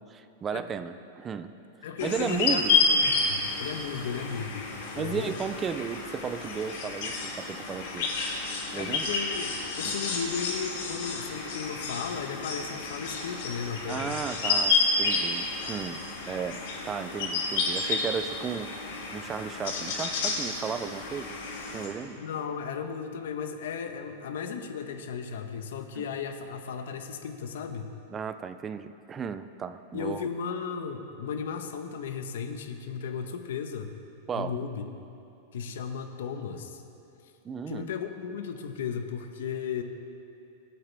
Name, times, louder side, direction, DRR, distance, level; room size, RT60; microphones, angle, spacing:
voice 1, 0.0-1.5 2.0-2.8 4.9-8.1 8.7-9.1 13.9-18.9 19.1-21.3 21.7-22.2 26.0-26.1 28.1-30.2 34.3-34.6 37.4-37.9, right 6 dB, 15° right, 11 dB, 0.4 m, -34 dB
voice 2, 1.8-5.3 8.7-14.2 22.2-27.9 29.9-33.9 34.3-34.8 35.5-36.8 37.7-39.8, left 6 dB, 75° left, 6 dB, 1.0 m, -35 dB
sound 1, 2.0-21.9, left 4 dB, 55° left, 2.7 m, -30 dB
24.0 x 8.7 x 3.4 m, 2.7 s
supercardioid pair, 170°, 0 cm